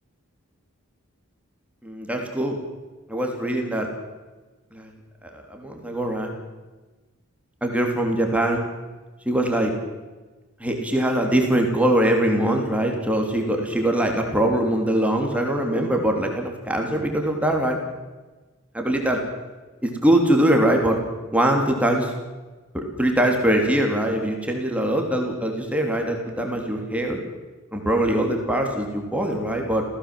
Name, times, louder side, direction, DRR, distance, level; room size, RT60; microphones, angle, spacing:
voice 1, 1.8-2.6 3.1-3.9 4.7-4.9 5.2-6.3 7.6-8.7 9.2-9.7 10.6-17.8 18.7-19.2 19.8-21.0 21.3-22.1 22.7-27.2 27.7-29.8, right 1 dB, 5° right, 2 dB, 3.2 m, -22 dB
28.5 x 16.5 x 7.7 m, 1.2 s
head